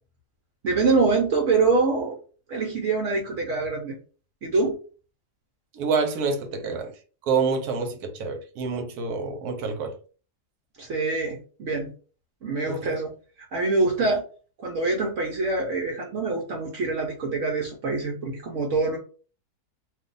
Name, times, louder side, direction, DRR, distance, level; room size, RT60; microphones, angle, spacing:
voice 1, 0.6-2.2 2.5-4.0 4.4-4.8 10.8-11.9 12.4-13.1 13.4-14.3 14.6-19.0, right 3 dB, 60° right, 0.9 m, -25 dB
voice 2, 5.7-6.9 7.2-9.9 12.7-13.0, right 5 dB, 80° right, 1.2 m, -27 dB
2.6 x 2.4 x 3.8 m
omnidirectional pair, 1.7 m